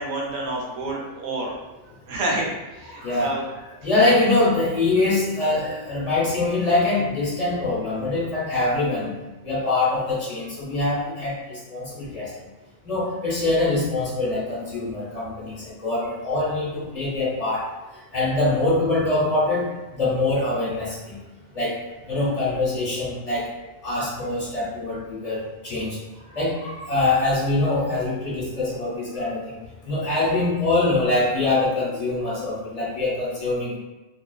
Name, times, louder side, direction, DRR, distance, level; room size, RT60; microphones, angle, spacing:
voice 1, 0.0-1.5 2.1-3.4, right 2 dB, 90° right, -2 dB, 1.0 m, -29 dB
voice 2, 2.9-3.4 3.8-9.1 9.4-12.3 12.8-17.6 18.1-19.6 19.9-21.2 21.5-21.7 22.1-23.5 23.8-26.0 26.3-29.6 29.9-33.8, left 2 dB, 30° left, -8 dB, 0.9 m, -24 dB
2.4 x 2.4 x 2.3 m, 1.1 s
omnidirectional pair, 1.4 m